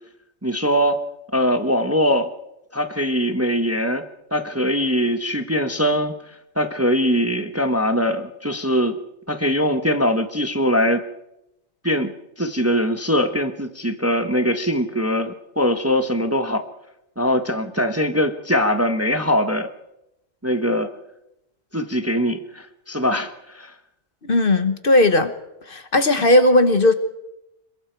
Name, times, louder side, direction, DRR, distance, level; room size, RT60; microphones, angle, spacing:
voice 1, 0.4-1.0 1.3-2.3 2.7-4.0 4.3-6.1 6.6-9.0 9.3-11.0 11.8-16.6 17.2-19.7 20.4-20.9 21.7-23.7, equal, 10° right, 7 dB, 1.0 m, -22 dB
voice 2, 24.3-25.3 25.7-26.9, left 2 dB, 45° left, 10 dB, 1.3 m, -16 dB
26.5 x 22.5 x 4.6 m, 0.88 s
omnidirectional pair, 1.3 m